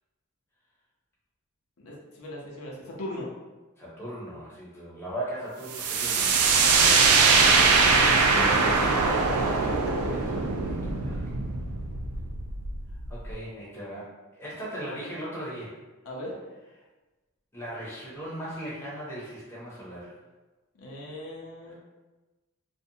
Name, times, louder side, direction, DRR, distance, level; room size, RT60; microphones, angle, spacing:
voice 1, 1.8-3.3 6.7-7.1 8.0-10.0 16.0-16.4 20.8-21.7, left 1 dB, 70° left, -4 dB, 0.6 m, -37 dB
voice 2, 3.8-6.5 10.1-11.3 13.1-14.1 14.3-15.8 17.5-20.1 21.7-21.8, right 1 dB, 10° left, -8 dB, 0.6 m, -38 dB
sound 1, 5.7-13.3, right 4 dB, 90° right, 0.3 m, -22 dB
2.5 x 2.1 x 2.6 m, 1.2 s
head